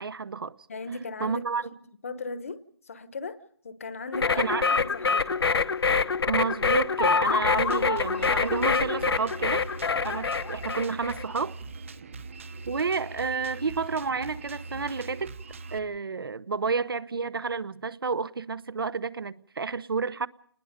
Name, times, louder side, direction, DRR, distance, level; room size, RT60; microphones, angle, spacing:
voice 1, 0.0-0.5 1.2-1.7 4.4-4.7 6.3-9.7 10.0-11.6 12.7-15.3 15.7-20.3, right 5 dB, 60° right, 1.0 m, -30 dB
voice 2, 0.7-1.4 2.0-2.6 2.9-5.3, left 3 dB, 30° left, 1.1 m, -37 dB
sound 1, 4.1-11.2, left 5 dB, 65° left, 1.1 m, -25 dB
Drum kit, 7.4-15.8, right 3 dB, 30° right, 1.1 m, -41 dB
29.5 x 20.0 x 5.2 m
hypercardioid pair, 175°, 14 cm